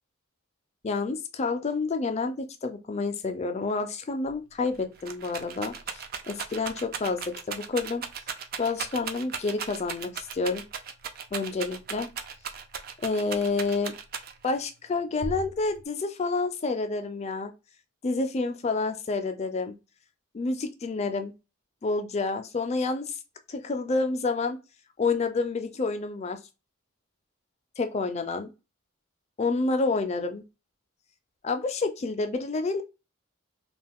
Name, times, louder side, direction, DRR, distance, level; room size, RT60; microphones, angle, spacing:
voice 1, 0.8-8.0 8.6-10.6 11.3-12.1 13.0-14.0 14.4-17.5 18.0-19.8 20.3-21.3 21.8-23.2 23.5-24.6 25.0-26.4 27.8-28.5 29.4-30.4 31.4-32.8, left 3 dB, 30° left, 0.4 m, -29 dB
Rattle, 4.3-4.4 4.7-14.6 15.2-15.8, right 6 dB, 45° right, 0.4 m, -37 dB
2.4 x 2.3 x 3.5 m
head